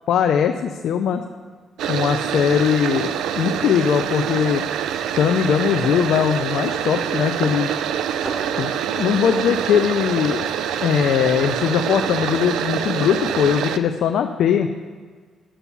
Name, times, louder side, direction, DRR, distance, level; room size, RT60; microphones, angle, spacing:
voice 1, 0.1-1.2 1.9-4.6 5.1-7.7 8.6-10.5 10.8-14.7, left 8 dB, 75° left, 6 dB, 0.6 m, -20 dB
sound 1, 1.8-13.8, right 9 dB, 80° right, 0.5 m, -25 dB
sound 2, 8.2-10.4 10.7-12.7 12.9-13.1, right 1 dB, 20° right, 2.6 m, -40 dB
10.0 x 7.0 x 7.0 m, 1.5 s
cardioid pair, 90°, 0 cm